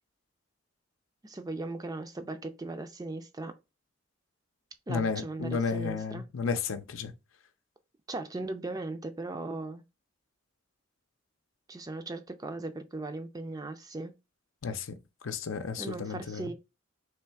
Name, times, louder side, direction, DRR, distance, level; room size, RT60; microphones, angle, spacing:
voice 1, 1.2-3.5 4.9-6.2 8.1-9.8 11.7-14.1 15.8-16.5, right 2 dB, 20° right, 0.4 m, -38 dB
voice 2, 4.9-7.1 14.6-15.0 15.2-16.5, left 5 dB, 80° left, 0.6 m, -32 dB
3.3 x 3.2 x 4.6 m
head